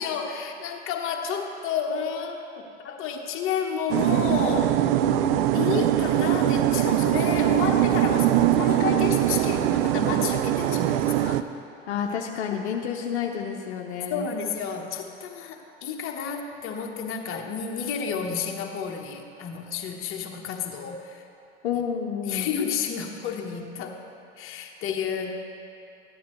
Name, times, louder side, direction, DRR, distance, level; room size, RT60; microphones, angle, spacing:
voice 1, 0.0-4.8 5.5-11.5 14.1-21.2 22.2-24.0 24.4-25.4, left 6 dB, 35° left, 2 dB, 1.2 m, -31 dB
sound 1, 3.9-11.4, right 12 dB, 55° right, 0.5 m, -22 dB
voice 2, 11.9-14.3 21.6-22.5, left 7 dB, 70° left, 1 dB, 0.8 m, -29 dB
14.0 x 10.0 x 3.2 m, 2.7 s
hypercardioid pair, 80°, 35 cm